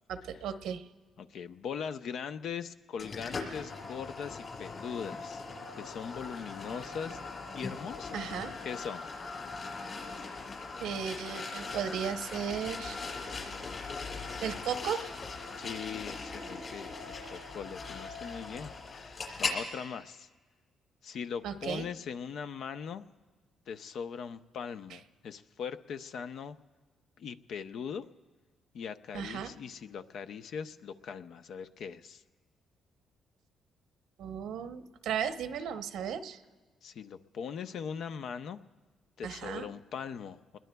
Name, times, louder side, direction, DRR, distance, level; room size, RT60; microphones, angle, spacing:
voice 1, 0.1-0.8 8.1-8.5 10.8-13.0 14.4-15.1 21.4-21.9 29.1-29.5 34.2-36.4 39.2-39.7, right 8 dB, 80° right, 9 dB, 0.8 m, -35 dB
voice 2, 1.2-5.4 5.8-7.2 7.5-8.2 8.6-9.1 15.6-20.3 21.0-23.0 23.7-26.6 27.2-28.1 28.7-32.2 36.8-38.6 39.2-40.6, left 7 dB, 70° left, 10 dB, 0.6 m, -40 dB
sound 1, 3.0-19.6, left 4 dB, 40° left, 6.8 m, -40 dB
29.0 x 21.0 x 2.3 m, 1.4 s
cardioid pair, 90°, 0 cm